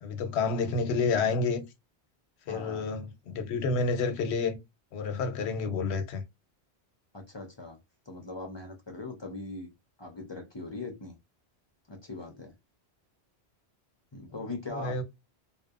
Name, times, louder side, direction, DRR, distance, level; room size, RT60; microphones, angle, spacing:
voice 1, 0.0-1.6 2.5-4.6 4.9-6.2 14.7-15.0, left 4 dB, 90° left, 0.9 m, -29 dB
voice 2, 2.5-2.9 7.1-7.8 8.1-9.7 10.0-11.1 11.9-12.5 14.1-15.0, left 2 dB, 40° left, 0.4 m, -40 dB
2.7 x 2.0 x 2.3 m
omnidirectional pair, 1.1 m